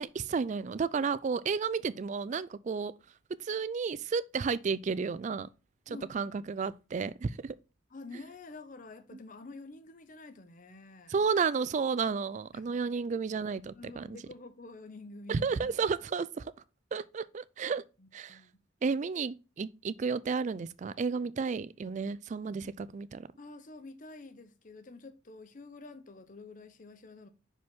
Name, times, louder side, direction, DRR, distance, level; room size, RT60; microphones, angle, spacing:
voice 1, 0.0-2.9 3.4-5.5 5.9-7.6 9.1-9.2 11.1-14.2 15.3-16.5 16.9-17.8 18.1-18.4 18.8-23.3, right 5 dB, 40° right, 0.3 m, -32 dB
voice 2, 5.9-6.5 7.9-11.1 12.5-12.6 13.7-15.7 18.0-18.6 23.4-27.3, left 3 dB, 40° left, 0.7 m, -48 dB
5.8 x 5.1 x 3.6 m
head